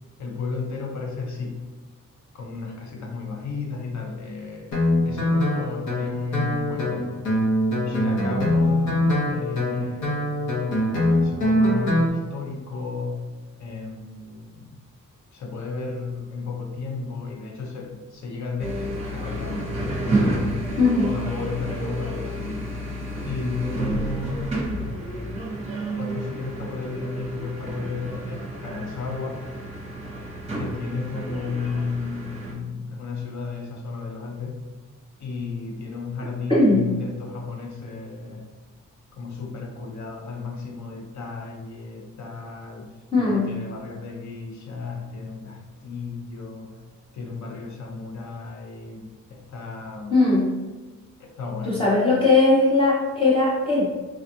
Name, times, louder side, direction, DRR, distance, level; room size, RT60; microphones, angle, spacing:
voice 1, 0.2-1.6 2.3-4.8 5.0-7.3 7.9-13.3 13.6-14.7 15.3-19.7 20.1-22.7 23.2-24.7 26.0-29.4 30.6-34.6 35.2-38.5 39.1-46.8 47.1-50.3 51.2-51.8, left 4 dB, 60° left, 1 dB, 0.7 m, -33 dB
Guitar, 4.7-12.1, left 1 dB, 75° left, 1.0 m, -23 dB
sound 1, 18.6-32.5, right 1 dB, 20° right, 0.7 m, -30 dB
voice 2, 20.8-21.2 36.5-36.9 43.1-43.5 50.1-50.5 51.6-53.9, left 2 dB, 15° left, -7 dB, 0.5 m, -19 dB
3.5 x 2.3 x 2.7 m, 1.2 s
wide cardioid pair, 150°, 32 cm